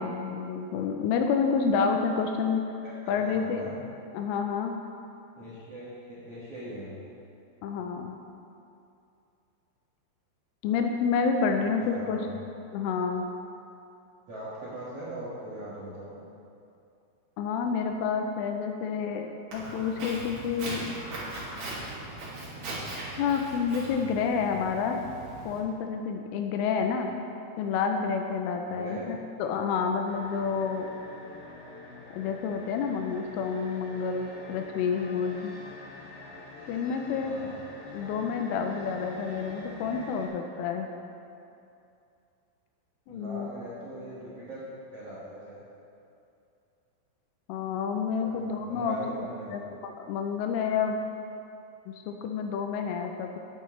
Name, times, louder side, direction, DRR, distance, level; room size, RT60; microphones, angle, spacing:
voice 1, 0.0-2.6 3.1-3.6 4.1-4.8 7.6-8.2 10.6-12.4 12.7-13.3 17.4-20.8 23.2-25.0 25.5-27.1 27.6-30.9 32.1-35.6 36.7-37.4 37.9-40.9 43.1-43.5 47.5-49.0 49.5-51.0 51.9-53.4, left 6 dB, 80° left, 4 dB, 3.0 m, -29 dB
voice 2, 2.8-3.7 5.3-7.0 11.6-12.3 14.3-16.2 26.9-27.0 28.7-29.1 37.2-37.6 43.1-45.6 48.2-49.5, right 1 dB, 80° right, -10 dB, 1.3 m, -41 dB
Walk footsteps, 19.5-25.6, right 2 dB, 45° right, 2.6 m, -39 dB
sound 1, 30.0-40.3, left 2 dB, 65° left, 3.8 m, -46 dB
12.5 x 9.9 x 3.2 m, 2.6 s
omnidirectional pair, 6.0 m